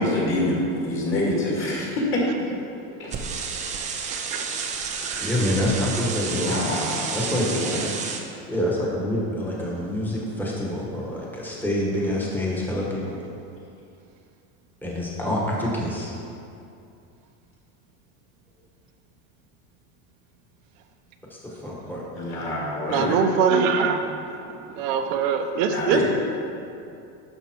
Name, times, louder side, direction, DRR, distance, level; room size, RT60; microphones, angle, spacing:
voice 1, 0.0-2.3 3.0-3.3 6.3-7.9 22.2-23.2 25.6-26.0, left 1 dB, 30° left, -4 dB, 2.4 m, -26 dB
sound 1, 3.1-8.2, right 5 dB, 20° right, 0.5 m, -30 dB
voice 2, 4.1-4.4 5.1-5.3 22.9-24.0 24.8-26.0, right 6 dB, 65° right, 5 dB, 0.9 m, -23 dB
voice 3, 5.2-6.5 7.1-7.5 8.5-13.2 14.8-16.1 21.3-22.0, left 1 dB, 5° left, -4 dB, 1.4 m, -26 dB
11.0 x 6.7 x 4.5 m, 2.6 s
cardioid pair, 165°, 41 cm